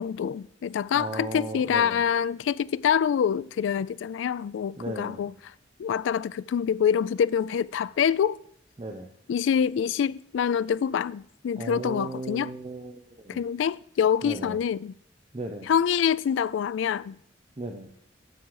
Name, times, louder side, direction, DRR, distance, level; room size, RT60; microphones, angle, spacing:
voice 1, 0.0-5.3 5.8-8.4 9.3-12.5 13.3-14.9 15.6-17.2, left 8 dB, 75° left, 0.3 m, -26 dB
voice 2, 0.9-2.0 4.8-5.3 8.8-9.1 11.6-13.4 14.2-14.6 15.3-15.7 17.6-17.9, right 2 dB, 30° right, 0.7 m, -36 dB
9.6 x 6.7 x 4.7 m
head